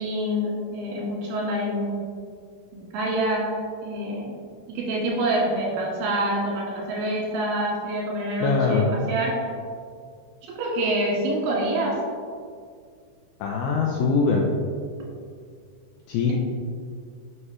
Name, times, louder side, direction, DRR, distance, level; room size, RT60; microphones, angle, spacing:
voice 1, 0.0-2.1 2.7-4.4 4.7-9.4 10.4-12.0, right 1 dB, 85° right, -3 dB, 4.2 m, -26 dB
voice 2, 8.4-8.9 13.4-14.5 16.1-16.3, left 4 dB, 90° left, -2 dB, 2.2 m, -22 dB
9.2 x 6.4 x 3.1 m, 2.1 s
omnidirectional pair, 5.3 m